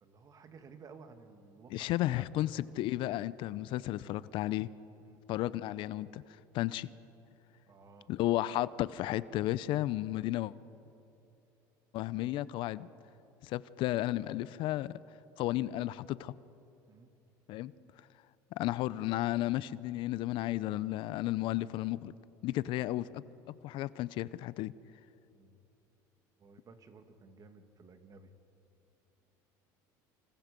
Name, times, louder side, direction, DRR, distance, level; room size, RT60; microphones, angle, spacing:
voice 1, 0.0-2.2 5.0-5.2 7.7-8.1 16.9-17.2 25.3-25.6 26.4-28.3, right 4 dB, 40° right, 7 dB, 2.2 m, -55 dB
voice 2, 1.7-4.7 5.3-6.2 6.5-6.9 8.1-10.5 11.9-12.9 13.4-15.0 15.4-16.3 17.5-17.7 18.6-22.1 22.4-23.2 23.6-24.7, left 15 dB, 60° left, 18 dB, 0.6 m, -33 dB
28.5 x 27.0 x 5.3 m, 2.8 s
supercardioid pair, 100°, 9 cm